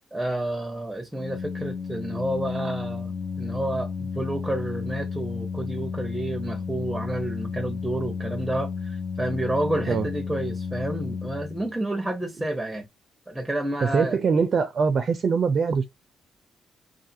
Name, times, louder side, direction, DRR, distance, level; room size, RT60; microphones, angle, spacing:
voice 1, 0.1-12.9 13.3-14.2, right 1 dB, 5° right, 0.6 m, -30 dB
Organ, 1.1-11.9, left 5 dB, 35° left, 0.5 m, -32 dB
voice 2, 13.8-15.8, right 5 dB, 50° right, 0.4 m, -23 dB
2.5 x 2.4 x 2.6 m
cardioid pair, 90°, 0 cm